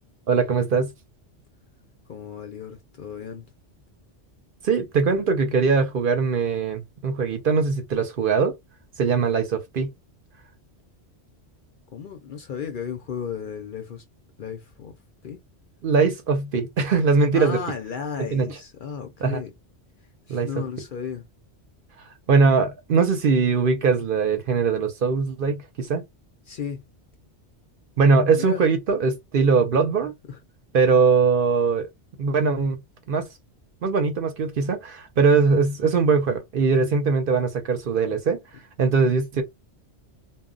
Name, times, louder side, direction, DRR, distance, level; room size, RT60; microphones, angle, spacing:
voice 1, 0.3-0.9 4.6-8.5 9.0-9.9 15.8-17.6 18.3-18.5 19.2-19.4 20.3-20.5 22.3-26.0 28.0-30.1 30.7-31.9 32.2-32.8 33.1-33.3 33.8-39.4, right 4 dB, 55° right, 0.7 m, -21 dB
voice 2, 2.1-3.5 11.9-14.0 14.4-14.9 15.2-15.4 17.3-19.5 20.3-21.3 26.5-26.8 28.4-28.7 30.3-30.4, left 7 dB, 60° left, 0.6 m, -34 dB
2.1 x 2.1 x 3.6 m
omnidirectional pair, 1.2 m